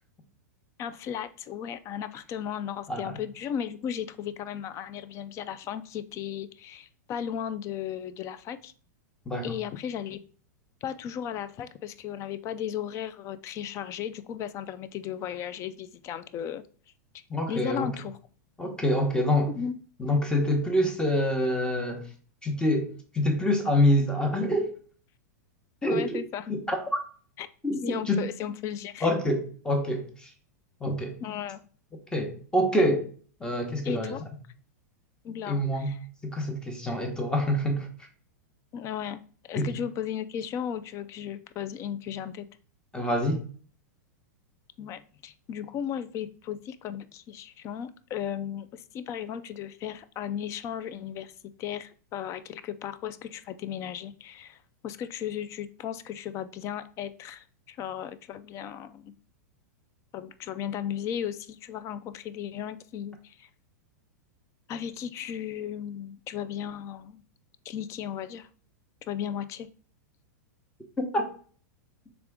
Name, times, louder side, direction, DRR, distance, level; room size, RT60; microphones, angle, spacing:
voice 1, 0.8-8.7 9.4-10.2 10.8-16.6 17.5-18.2 19.5-19.8 25.8-26.5 27.4-27.5 27.9-29.1 31.2-31.6 33.8-34.3 35.2-36.0 38.7-39.2 39.5-42.5 44.8-51.3 51.6-54.6 54.8-59.1 60.1-63.5 64.7-67.2 67.7-68.5 69.1-69.7, left 9 dB, 30° left, 0.3 m, -35 dB
voice 2, 2.9-3.2 9.3-9.5 17.3-17.9 18.6-19.5 20.0-22.1 22.4-24.7 25.8-26.2 26.5-27.0 27.6-28.2 29.0-30.3 30.8-31.2 32.1-33.1 33.4-34.2 35.4-35.9 36.2-37.9 39.5-39.7 42.9-43.4 71.0-71.3, left 1 dB, 10° left, 0.9 m, -26 dB
3.6 x 3.5 x 3.5 m
hypercardioid pair, 120°, 10 cm